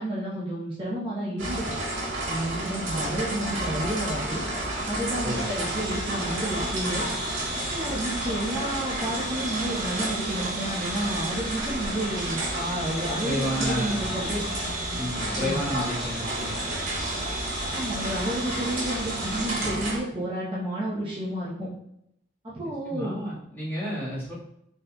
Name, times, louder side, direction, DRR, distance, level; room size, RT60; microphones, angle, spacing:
voice 1, 0.0-1.7 2.3-4.4 4.8-7.1 7.7-14.4 15.2-15.6 17.7-21.7 22.4-23.2, right 1 dB, 25° right, -9 dB, 0.8 m, -31 dB
sound 1, 1.4-20.0, right 1 dB, 80° right, 1.5 m, -31 dB
sound 2, 5.3-19.8, right 1 dB, 45° right, 1.1 m, -36 dB
voice 2, 13.2-14.1 15.0-16.6 22.8-24.3, equal, 10° left, -11 dB, 1.5 m, -31 dB
4.1 x 3.9 x 2.2 m, 0.77 s
head